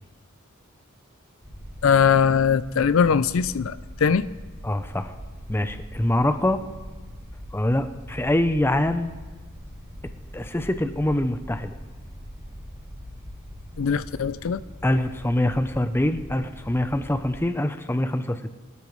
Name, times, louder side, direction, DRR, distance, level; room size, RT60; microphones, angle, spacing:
sound 1, 1.4-17.3, equal, 15° right, 3.6 m, -42 dB
voice 1, 1.8-4.3 13.8-14.6, left 6 dB, 75° left, 16 dB, 0.4 m, -21 dB
voice 2, 4.6-5.1 5.5-6.6 7.5-9.1 10.3-11.8 14.8-18.6, left 1 dB, 10° left, 9 dB, 0.5 m, -24 dB
23.0 x 12.5 x 3.2 m, 1.4 s
head